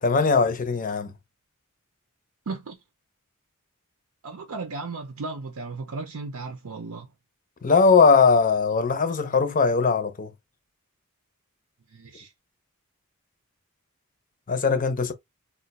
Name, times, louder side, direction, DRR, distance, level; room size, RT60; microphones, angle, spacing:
voice 1, 0.0-1.1 7.6-10.3 14.5-15.1, left 5 dB, 40° left, 0.6 m, -20 dB
voice 2, 2.5-2.8 4.2-7.1 11.9-12.3, right 3 dB, 75° right, 0.6 m, -35 dB
2.4 x 2.2 x 4.0 m
head